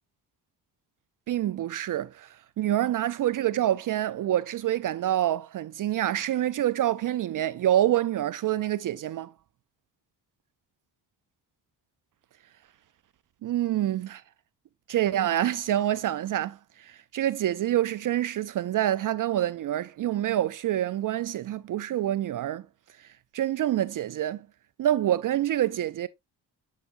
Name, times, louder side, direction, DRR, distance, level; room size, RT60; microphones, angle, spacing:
voice 1, 1.3-9.3 13.4-14.2 14.9-22.7 23.0-23.1 23.3-24.4 24.8-26.1, right 12 dB, 55° right, 0.4 m, -27 dB
8.1 x 4.9 x 2.5 m
cardioid pair, 65°, 40 cm